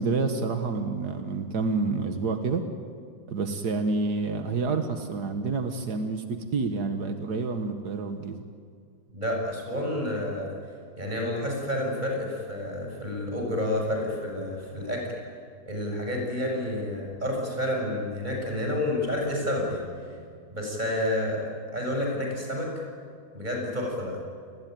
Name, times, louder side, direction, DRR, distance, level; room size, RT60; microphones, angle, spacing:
voice 1, 0.0-2.6 3.3-8.4, right 4 dB, 85° right, 6 dB, 2.1 m, -28 dB
voice 2, 9.1-10.5 11.0-15.1 15.7-19.8 20.5-21.4 21.7-22.7 23.3-24.2, left 1 dB, 25° right, 0 dB, 7.4 m, -29 dB
29.0 x 21.0 x 9.4 m, 2.2 s
omnidirectional pair, 1.7 m